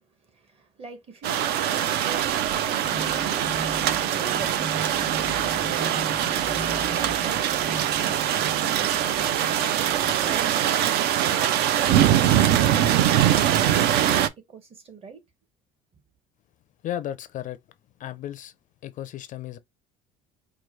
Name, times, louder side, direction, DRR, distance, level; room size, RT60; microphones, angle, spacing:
voice 1, 0.0-11.5 11.8-15.2 15.9-16.0, right 4 dB, 35° right, 1.1 m, -44 dB
sound 1, 1.2-14.3, right 11 dB, 65° right, 0.5 m, -23 dB
sound 2, 2.8-10.7, right 2 dB, 15° right, 0.6 m, -37 dB
voice 2, 16.8-17.6 18.0-18.5 18.8-19.6, left 11 dB, 45° left, 0.4 m, -34 dB
4.7 x 2.2 x 3.1 m
cardioid pair, 130°, 18 cm